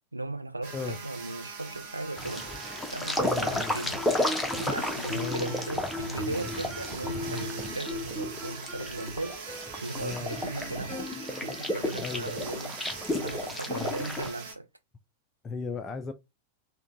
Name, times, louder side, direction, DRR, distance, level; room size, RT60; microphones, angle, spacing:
voice 1, 0.1-2.5 2.9-4.0 4.6-9.4 9.8-12.8 13.2-14.7, right 2 dB, 85° right, 0.3 m, -37 dB
sound 1, 0.6-14.5, right 5 dB, 50° right, 1.0 m, -42 dB
sound 2, 2.2-14.3, left 1 dB, 5° left, 0.7 m, -33 dB
voice 2, 3.2-3.7 5.1-5.6 7.2-7.4 10.0-10.4 12.0-12.4 13.7-13.9 15.4-16.1, left 4 dB, 20° left, 0.3 m, -36 dB
Guitar, 3.9-11.7, left 2 dB, 25° right, 1.2 m, -40 dB
3.6 x 2.2 x 2.6 m
figure-of-eight pair, 90°, 0 cm